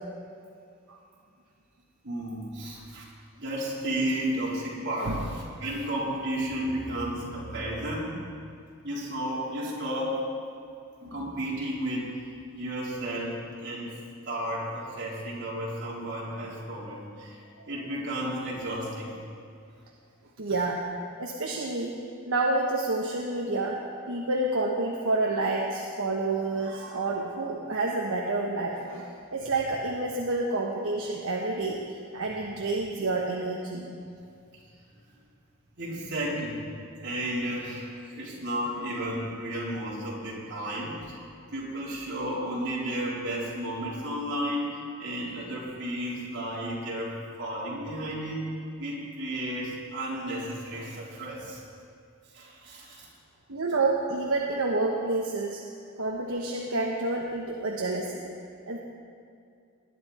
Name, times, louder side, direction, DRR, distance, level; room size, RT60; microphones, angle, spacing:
voice 1, 2.0-3.0 3.4-8.2 8.8-10.2 11.0-13.9 14.3-19.2 35.8-36.6 37.0-41.2 41.5-48.5 48.8-51.6 52.3-53.1, right 1 dB, 55° right, -6 dB, 3.9 m, -33 dB
voice 2, 20.4-20.8 21.2-21.9 22.3-23.8 24.1-31.8 32.1-33.9 53.5-55.6 56.0-58.2 58.7-58.8, right 2 dB, 75° right, -2 dB, 1.2 m, -29 dB
20.0 x 10.5 x 4.3 m, 2.4 s
head